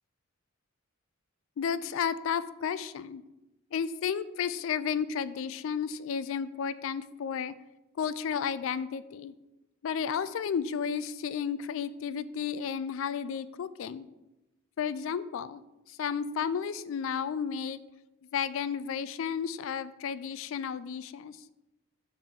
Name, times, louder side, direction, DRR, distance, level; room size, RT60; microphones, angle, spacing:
voice 1, 1.6-3.2 3.7-7.5 8.0-9.3 9.8-14.1 14.8-15.6 15.9-17.8 18.3-21.4, left 7 dB, 60° left, 16 dB, 0.3 m, -32 dB
6.5 x 5.7 x 3.6 m, 0.98 s
head